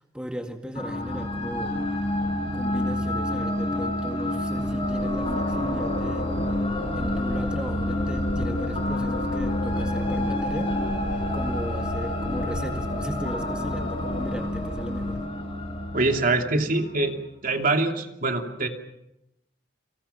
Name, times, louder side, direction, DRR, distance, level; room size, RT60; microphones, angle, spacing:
voice 1, 0.1-1.8 2.5-6.3 6.9-10.7 11.3-15.2, equal, 5° right, 4 dB, 2.1 m, -36 dB
sound 1, 0.7-17.0, left 1 dB, 30° left, 6.1 m, -29 dB
sound 2, 4.6-15.3, left 1 dB, 45° left, 1.1 m, -37 dB
sound 3, 4.8-14.3, left 1 dB, 65° left, 5.8 m, -36 dB
voice 2, 15.9-17.2 17.4-18.7, right 2 dB, 50° right, 4 dB, 2.7 m, -24 dB
30.0 x 26.0 x 5.8 m, 0.87 s
head